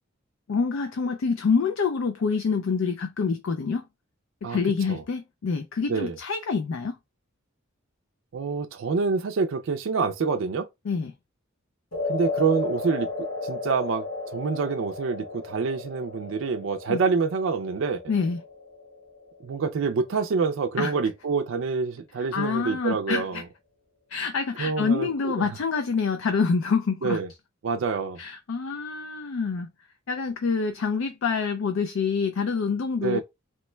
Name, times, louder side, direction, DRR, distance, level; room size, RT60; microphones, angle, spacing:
voice 1, 0.5-3.8 4.5-7.0 10.9-11.1 16.9-17.0 18.1-18.4 20.8-20.9 22.3-23.4 24.1-27.2 28.2-29.7 30.1-33.2, left 5 dB, 70° left, 0.4 m, -26 dB
voice 2, 8.3-10.7 12.1-18.0 19.4-23.4 24.6-25.5 27.0-27.3 27.6-28.2 33.0-33.2, right 5 dB, 65° right, 0.4 m, -27 dB
sound 1, 11.9-20.3, left 3 dB, 85° left, 1.3 m, -34 dB
3.0 x 2.2 x 3.1 m
head